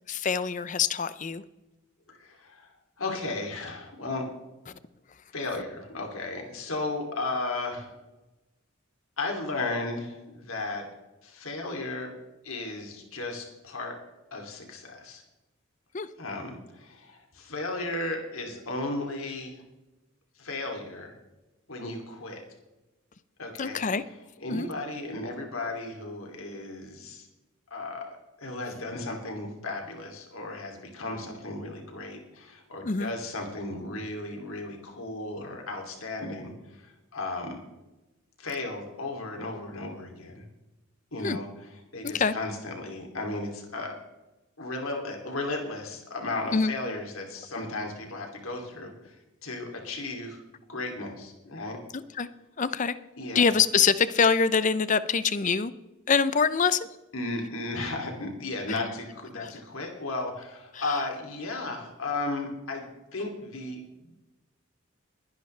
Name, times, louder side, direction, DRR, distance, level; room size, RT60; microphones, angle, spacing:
voice 1, 0.1-1.4 15.9-16.1 23.6-24.0 24.5-24.7 32.8-33.1 41.2-41.4 42.0-42.3 46.5-46.7 51.9-52.3 52.6-52.9 53.3-55.7 56.1-56.9 59.4-59.5 60.7-60.8, left 5 dB, 35° left, 14 dB, 0.6 m, -24 dB
voice 2, 2.1-2.7 3.0-4.3 5.3-7.9 9.2-10.9 11.2-12.1 12.4-14.0 14.3-15.2 16.2-19.6 20.4-21.2 21.7-22.4 23.4-23.8 24.4-27.3 27.7-37.6 38.4-40.5 41.1-44.0 44.6-49.2 49.4-50.4 50.7-51.8 53.2-53.5 57.1-64.2, left 2 dB, 80° left, 2 dB, 2.8 m, -35 dB
22.0 x 10.5 x 3.3 m, 1.0 s
head